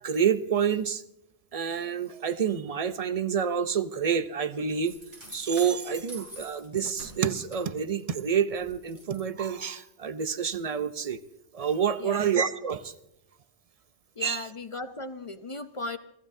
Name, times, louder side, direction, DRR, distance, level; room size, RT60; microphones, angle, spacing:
voice 1, 0.0-1.0 1.5-4.9 5.3-11.2 11.5-12.9 14.2-14.5, right 7 dB, 40° right, 12 dB, 0.6 m, -28 dB
sound 1, 4.8-8.2 8.5-9.2, equal, 55° right, 5.5 m, -46 dB
voice 2, 14.2-16.0, left 3 dB, 40° left, 10 dB, 0.5 m, -37 dB
28.0 x 15.0 x 2.7 m, 0.86 s
omnidirectional pair, 1.1 m